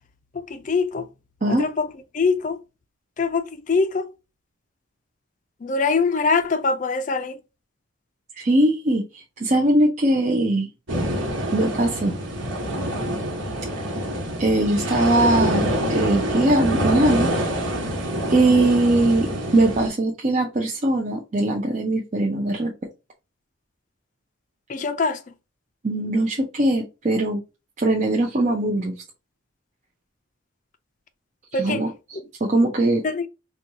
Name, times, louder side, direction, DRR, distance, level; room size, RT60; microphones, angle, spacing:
voice 1, 0.4-1.0 1.5-1.9 2.1-2.6 3.2-4.1 5.6-7.4 24.7-25.2 31.5-31.8 33.0-33.3, left 4 dB, 40° left, 0.4 m, -23 dB
voice 2, 8.3-10.7 11.5-12.2 14.4-17.3 18.3-22.7 25.8-27.4 27.8-29.0 31.5-33.3, right 1 dB, 35° right, 0.5 m, -21 dB
sound 1, 10.9-19.9, equal, 75° right, 1.2 m, -26 dB
4.2 x 2.3 x 2.7 m
head